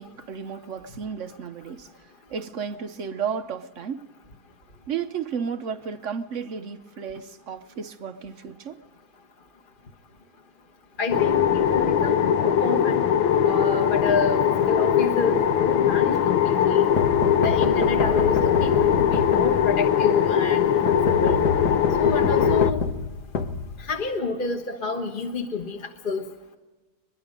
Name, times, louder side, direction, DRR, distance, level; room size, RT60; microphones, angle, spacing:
voice 1, 0.0-4.1 4.9-8.8, right 7 dB, 65° right, 0.7 m, -33 dB
voice 2, 11.0-13.0 13.4-16.9 17.4-21.5 22.0-22.9 23.8-26.2, left 4 dB, 30° left, 1.3 m, -28 dB
sound 1, 11.1-22.7, left 9 dB, 75° left, 1.6 m, -21 dB
sound 2, 17.0-19.9 20.9-24.2, left 4 dB, 55° left, 1.6 m, -28 dB
23.0 x 22.5 x 5.2 m
omnidirectional pair, 2.2 m